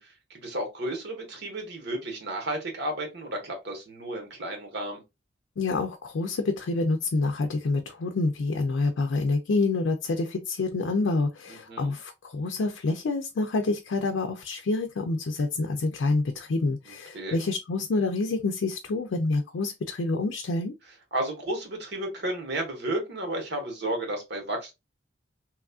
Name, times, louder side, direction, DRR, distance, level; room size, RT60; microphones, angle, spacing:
voice 1, 0.0-5.0 11.5-11.9 16.8-17.4 21.1-24.7, right 1 dB, 65° right, 1.2 m, -33 dB
voice 2, 5.6-20.7, left 3 dB, 85° left, 0.4 m, -27 dB
3.0 x 2.3 x 2.4 m
head